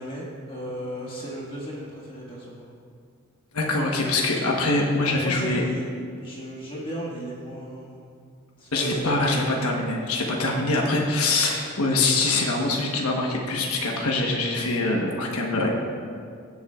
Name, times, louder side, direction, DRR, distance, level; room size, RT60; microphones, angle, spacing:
voice 1, 0.0-2.6 4.9-8.0 8.6-9.4, equal, 25° left, -5 dB, 1.7 m, -35 dB
voice 2, 3.5-5.6 8.7-15.7, left 2 dB, 85° left, -1 dB, 1.1 m, -24 dB
17.0 x 7.1 x 2.4 m, 2.2 s
head